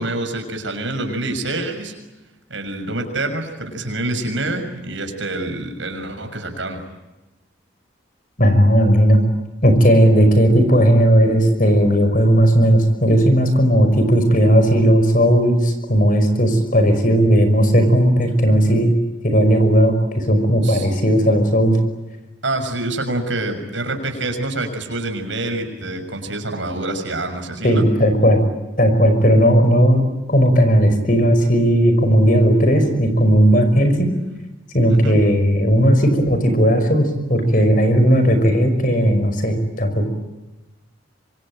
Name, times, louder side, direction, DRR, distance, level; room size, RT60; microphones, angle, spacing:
voice 1, 0.0-1.9 2.5-6.8 20.6-20.9 22.4-27.9 34.9-35.2, right 2 dB, 70° right, 6 dB, 6.5 m, -26 dB
voice 2, 8.4-9.2 9.6-18.9 19.2-21.8 27.6-28.4 28.8-30.0 30.3-34.1 34.7-40.1, equal, 45° left, 8 dB, 5.5 m, -15 dB
26.0 x 25.5 x 9.0 m, 1.1 s
head